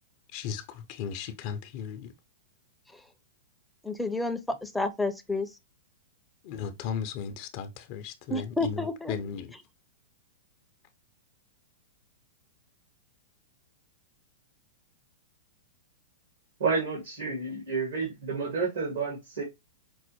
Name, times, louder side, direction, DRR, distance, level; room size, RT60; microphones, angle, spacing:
voice 1, 0.3-2.1 6.4-9.5, left 7 dB, 50° left, 0.5 m, -36 dB
voice 2, 3.8-5.5 8.3-9.1, left 2 dB, 5° left, 0.5 m, -30 dB
voice 3, 16.6-19.4, right 4 dB, 75° right, 2.0 m, -30 dB
5.2 x 2.1 x 2.9 m
hypercardioid pair, 120°, 0 cm